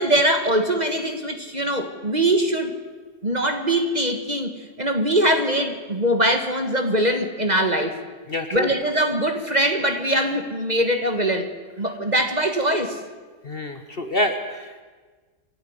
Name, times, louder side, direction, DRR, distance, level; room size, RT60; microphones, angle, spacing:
voice 1, 0.0-2.7 3.2-8.0 8.5-11.5 11.8-13.0, right 1 dB, 25° right, 7 dB, 1.7 m, -22 dB
voice 2, 8.3-8.7 13.4-14.8, left 1 dB, 40° left, 8 dB, 1.4 m, -27 dB
28.0 x 12.0 x 9.7 m, 1.4 s
omnidirectional pair, 1.7 m